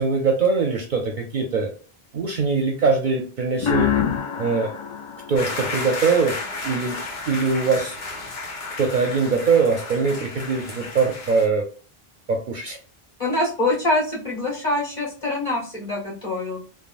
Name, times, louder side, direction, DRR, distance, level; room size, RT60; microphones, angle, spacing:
voice 1, 0.0-1.7 2.1-3.9 4.4-4.7 5.3-6.4 6.6-7.0 7.3-7.9 8.8-11.6 12.3-12.8, right 4 dB, 60° right, 3 dB, 0.6 m, -22 dB
sound 1, 3.6-6.3, left 8 dB, 50° left, 0.4 m, -26 dB
sound 2, 5.4-11.5, left 3 dB, 90° left, 1.2 m, -33 dB
voice 2, 13.2-16.6, left 2 dB, 30° left, -6 dB, 1.6 m, -24 dB
3.4 x 2.1 x 2.4 m, 0.40 s
omnidirectional pair, 1.0 m